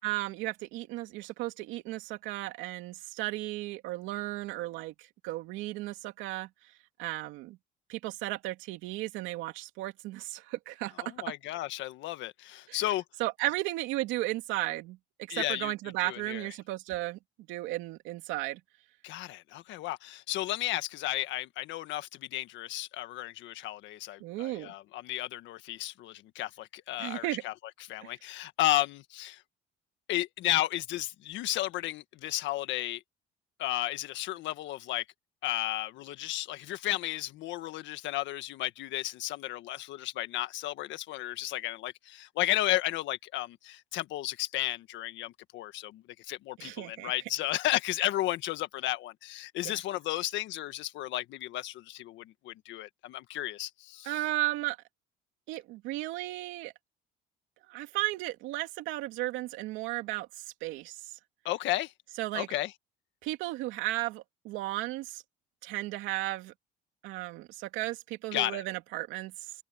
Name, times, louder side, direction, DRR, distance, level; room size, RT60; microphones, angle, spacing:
voice 1, 0.0-6.5 7.0-7.6 7.9-11.1 12.7-12.8 13.2-17.2 17.5-18.6 24.2-24.7 27.0-27.4 28.0-28.1 46.6-47.1 49.6-49.8 54.0-54.8 55.5-56.7 57.7-61.2 62.2-62.5 63.2-65.2 65.6-66.5 67.0-69.5, right 17 dB, 90° right, 2.7 m, -35 dB
voice 2, 11.0-13.0 15.3-15.7 16.0-16.5 19.0-27.5 27.9-29.4 30.1-33.0 33.6-35.0 35.4-54.1 61.4-61.9 62.3-62.7 68.3-68.6, left 15 dB, 75° left, 1.6 m, -33 dB
open air
cardioid pair, 115°, 19 cm